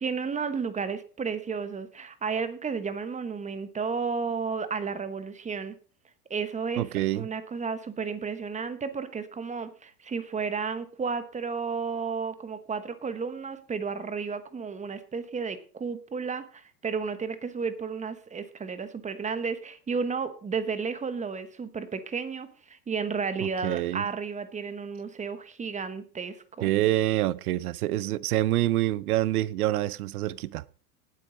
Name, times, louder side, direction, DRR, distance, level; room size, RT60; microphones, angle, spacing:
voice 1, 0.0-5.8 6.3-26.7, right 5 dB, 15° right, 1.1 m, -32 dB
voice 2, 6.8-7.3 23.4-24.1 26.6-30.6, right 15 dB, 70° right, 0.8 m, -26 dB
19.0 x 7.8 x 3.9 m
hypercardioid pair, 105°, 46 cm